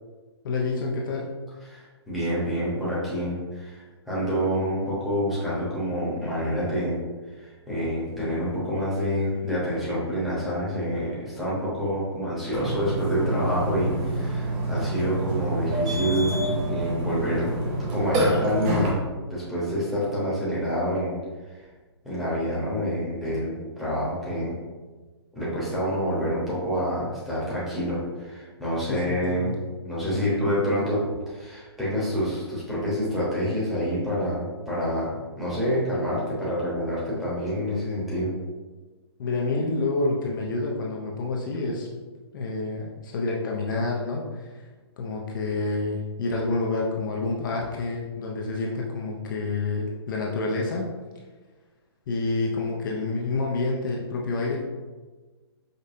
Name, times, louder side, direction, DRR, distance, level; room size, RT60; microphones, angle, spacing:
voice 1, 0.4-1.4 28.9-29.6 30.1-30.9 39.2-41.9 42.3-44.6 45.0-50.9 52.1-54.6, left 3 dB, 45° left, -2 dB, 0.5 m, -28 dB
voice 2, 1.7-7.0 7.4-16.4 16.6-17.5 17.9-19.0 19.3-21.1 21.5-21.6 22.0-24.5 25.3-38.3, equal, ahead, -9 dB, 1.0 m, -27 dB
Burping eructation, 12.5-18.9, right 1 dB, 25° right, 0.7 m, -27 dB
5.1 x 2.1 x 2.6 m, 1.3 s
hypercardioid pair, 155°, 14 cm